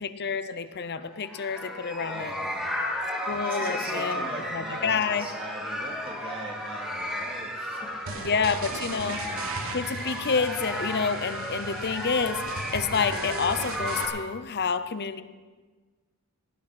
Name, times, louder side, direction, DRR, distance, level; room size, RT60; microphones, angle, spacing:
voice 1, 0.0-2.3 3.3-5.3 8.2-9.3 9.7-12.4 12.7-15.2, left 5 dB, 50° left, 12 dB, 0.7 m, -28 dB
sound 1, 1.1-14.1, left 1 dB, ahead, 2.2 m, -34 dB
voice 2, 2.0-2.8 3.4-8.3 8.8-8.9, right 1 dB, 25° right, 0 dB, 2.6 m, -41 dB
sound 2, 8.1-14.1, right 3 dB, 65° right, 1.2 m, -37 dB
18.0 x 8.9 x 6.1 m, 1.4 s
head